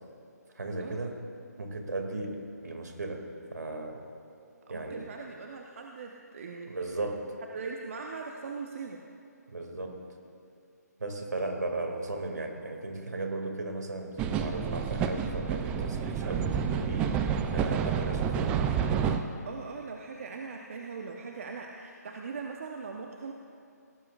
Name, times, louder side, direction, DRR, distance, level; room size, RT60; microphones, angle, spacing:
voice 1, 0.6-1.2 1.6-4.0 4.7-5.0 6.7-7.3 9.5-10.0 11.0-17.2 17.5-18.6, right 2 dB, 75° right, 3 dB, 2.2 m, -36 dB
voice 2, 4.7-6.7 7.5-9.0 19.5-23.3, right 4 dB, 50° right, 1 dB, 0.9 m, -40 dB
sound 1, 14.2-19.2, right 7 dB, 10° right, 0.4 m, -29 dB
18.0 x 17.0 x 2.4 m, 2.6 s
figure-of-eight pair, 145°, 9 cm